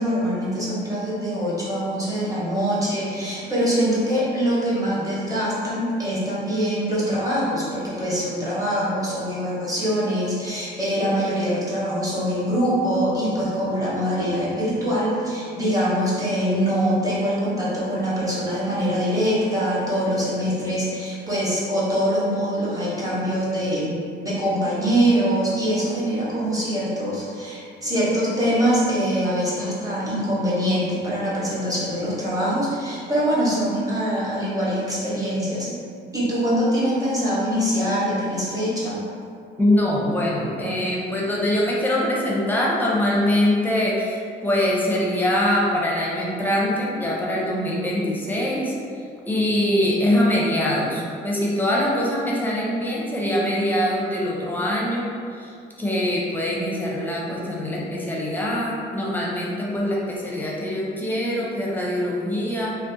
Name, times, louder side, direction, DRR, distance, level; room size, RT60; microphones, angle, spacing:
voice 1, 0.0-35.7 36.1-39.0, equal, 15° right, -8 dB, 0.8 m, -23 dB
voice 2, 39.6-48.7 49.3-62.7, left 1 dB, 10° left, -5 dB, 0.6 m, -23 dB
2.6 x 2.0 x 2.6 m, 2.3 s
cardioid pair, 90°, 20 cm